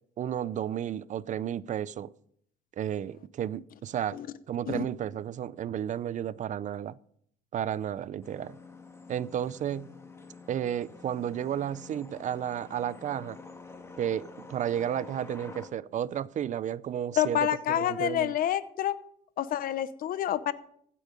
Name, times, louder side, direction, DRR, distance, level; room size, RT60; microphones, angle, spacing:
voice 1, 0.2-2.1 2.8-4.2 4.5-7.0 7.5-8.6 9.1-9.9 10.5-13.4 14.0-18.3, right 10 dB, 45° right, 0.5 m, -32 dB
sound 1, 8.2-15.7, left 3 dB, 15° left, 1.7 m, -48 dB
voice 2, 17.2-19.0 19.4-20.5, left 11 dB, 60° left, 0.8 m, -28 dB
15.5 x 8.5 x 5.2 m
cardioid pair, 110°, 17 cm